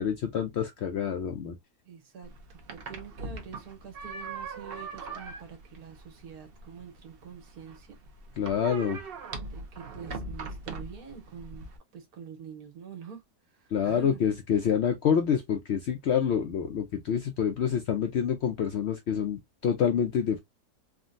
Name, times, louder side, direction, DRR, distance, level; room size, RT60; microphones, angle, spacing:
voice 1, 0.0-1.6 8.4-9.0 13.7-20.4, left 8 dB, 70° left, 0.6 m, -27 dB
voice 2, 1.8-8.0 9.5-13.2 13.5-14.2, right 7 dB, 75° right, 1.6 m, -46 dB
sound 1, 2.2-11.8, right 3 dB, 55° right, 0.7 m, -41 dB
3.5 x 2.2 x 2.4 m
omnidirectional pair, 1.6 m